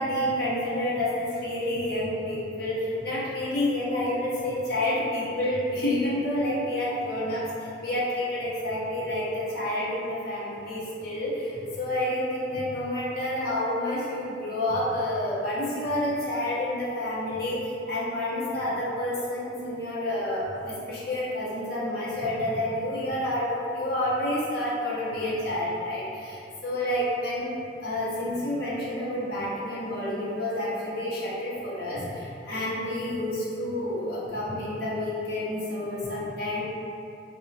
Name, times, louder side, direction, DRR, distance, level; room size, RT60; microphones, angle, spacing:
voice 1, 0.0-27.5 27.8-36.6, left 1 dB, 55° left, -7 dB, 0.6 m, -29 dB
2.9 x 2.1 x 2.6 m, 2.6 s
head